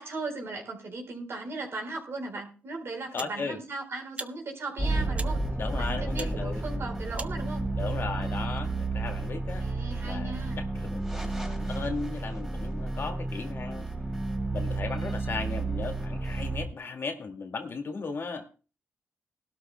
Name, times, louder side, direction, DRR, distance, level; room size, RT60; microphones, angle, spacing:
voice 1, 0.0-5.4 5.7-7.7 9.6-10.6, right 3 dB, 60° right, 3 dB, 4.2 m, -37 dB
sound 1, 2.2-2.4 3.2-3.4 4.1-4.3 5.1-5.3 6.2-6.3 7.1-7.4, right 3 dB, 30° right, 0.8 m, -39 dB
voice 2, 3.1-3.6 5.6-6.6 7.8-9.6 10.0-13.9 14.5-18.5, left 4 dB, 55° left, 4 dB, 2.1 m, -36 dB
sound 2, 4.8-16.7, right 2 dB, 10° right, 3.6 m, -31 dB
19.5 x 12.5 x 2.2 m, 0.35 s
cardioid pair, 65°, 5 cm